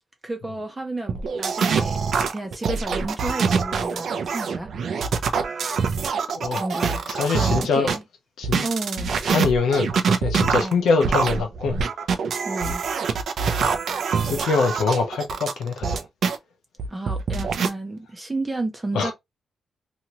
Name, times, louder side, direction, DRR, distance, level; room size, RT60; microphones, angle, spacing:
voice 1, 0.2-2.0 2.3-4.7 6.6-7.0 7.3-8.0 8.6-9.1 10.6-10.8 12.4-12.8 16.9-19.1, right 2 dB, 20° right, 0.7 m, -31 dB
sound 1, 1.1-8.0 8.4-16.4 16.8-17.7, right 5 dB, 65° right, 0.6 m, -24 dB
voice 2, 7.1-7.9 8.4-8.7 9.3-11.8 14.2-16.0 18.9-19.1, left 4 dB, 85° left, 0.6 m, -23 dB
2.8 x 2.5 x 2.9 m
cardioid pair, 90°, 0 cm